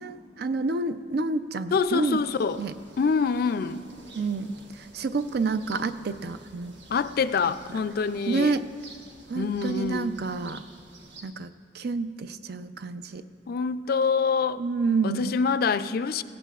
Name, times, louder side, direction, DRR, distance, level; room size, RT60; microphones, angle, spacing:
voice 1, 0.0-2.2 2.5-2.7 4.1-6.7 8.3-8.6 9.3-10.6 11.2-11.5 11.7-13.2 14.6-15.3, right 4 dB, 60° right, 0.5 m, -29 dB
voice 2, 1.7-2.6 3.0-3.8 6.9-8.5 9.3-10.1 13.5-14.6 15.0-16.2, left 5 dB, 55° left, 0.4 m, -25 dB
sound 1, 1.7-11.2, right 2 dB, 80° right, 1.3 m, -51 dB
17.0 x 16.0 x 2.4 m
head